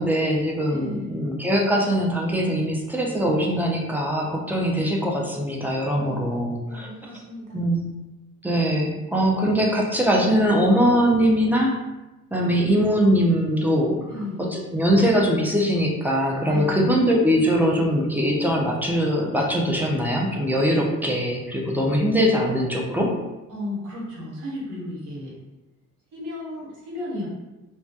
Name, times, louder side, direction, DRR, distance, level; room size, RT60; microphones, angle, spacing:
voice 1, 0.0-6.9 7.5-7.8 8.4-11.8 12.3-14.0 14.5-23.1, equal, 5° right, -2 dB, 0.4 m, -22 dB
voice 2, 0.7-1.3 5.9-6.2 6.7-7.7 14.0-14.5 16.5-16.9 23.5-25.3 26.1-27.3, left 1 dB, 80° right, -5 dB, 1.0 m, -34 dB
2.2 x 2.2 x 2.6 m, 1.0 s
cardioid pair, 90°, 30 cm